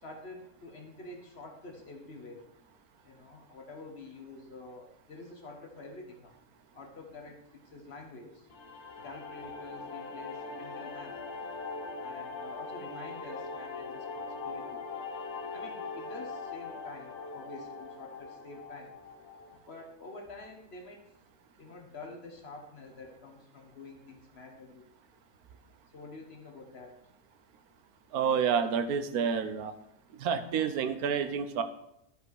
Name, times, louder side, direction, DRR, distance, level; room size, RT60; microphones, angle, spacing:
voice 1, 0.0-2.4 3.0-6.4 6.7-8.5 9.0-11.2 12.0-14.8 15.5-19.0 19.5-21.1 21.6-24.8 25.9-27.0, left 2 dB, 45° left, 3 dB, 1.4 m, -48 dB
sound 1, 8.5-19.6, left 4 dB, 85° left, 1.6 m, -41 dB
voice 2, 28.1-29.7 30.1-31.6, right 7 dB, 80° right, 10 dB, 1.2 m, -29 dB
12.5 x 5.3 x 4.7 m, 0.78 s
omnidirectional pair, 1.6 m